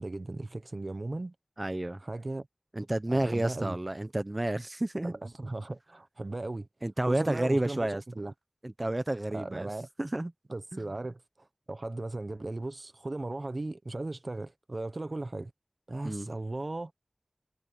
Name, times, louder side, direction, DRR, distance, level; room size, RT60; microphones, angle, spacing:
voice 1, 0.0-1.3 2.0-2.5 3.1-3.7 5.0-6.7 7.1-7.9 8.2-8.3 9.3-9.9 10.5-11.2 11.7-15.5 15.9-16.9, right 2 dB, 60° right, 1.1 m, -37 dB
voice 2, 1.6-2.0 2.7-5.1 6.8-8.0 8.6-9.7 10.0-10.3 10.7-10.8 16.0-16.3, right 1 dB, 40° right, 0.9 m, -30 dB
wide cardioid pair, 45°, 0 cm